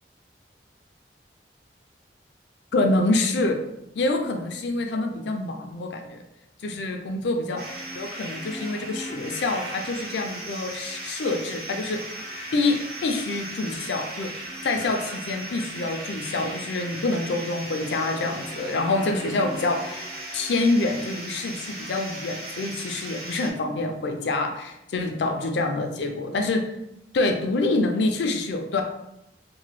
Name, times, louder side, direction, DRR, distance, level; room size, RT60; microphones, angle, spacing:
voice 1, 2.7-3.6 3.9-6.2 6.6-7.6 8.0-12.1 12.5-26.7 27.1-28.8, left 2 dB, 70° left, 5 dB, 0.4 m, -26 dB
sound 1, 7.6-23.5, right 1 dB, 55° right, 0.6 m, -37 dB
3.0 x 2.2 x 3.0 m, 0.85 s
head